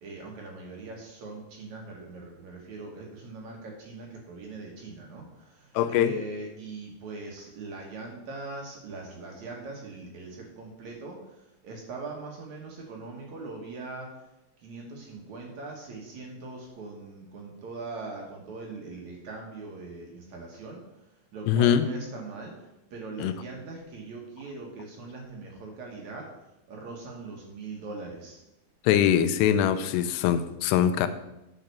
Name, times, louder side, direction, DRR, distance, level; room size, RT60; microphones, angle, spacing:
voice 1, 0.0-14.2 14.6-20.8 21.3-26.3 26.7-28.4, right 3 dB, 60° right, 0 dB, 2.2 m, -41 dB
voice 2, 5.8-6.1 21.5-21.9 23.2-23.3 28.8-31.1, left 9 dB, 90° left, 11 dB, 2.8 m, -22 dB
9.0 x 5.8 x 6.7 m, 0.93 s
omnidirectional pair, 4.7 m